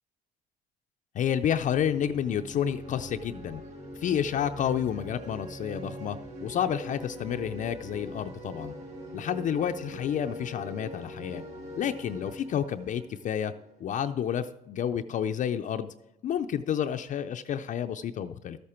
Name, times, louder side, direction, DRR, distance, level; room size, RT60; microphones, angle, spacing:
voice 1, 1.1-3.6 4.0-8.7 9.1-11.4 11.8-13.5 13.8-15.9 16.2-18.6, left 9 dB, 50° left, 7 dB, 0.5 m, -30 dB
sound 1, 1.3-13.9, equal, 45° right, 3.6 m, -42 dB
13.0 x 8.5 x 4.4 m, 0.92 s
cardioid pair, 110°, 17 cm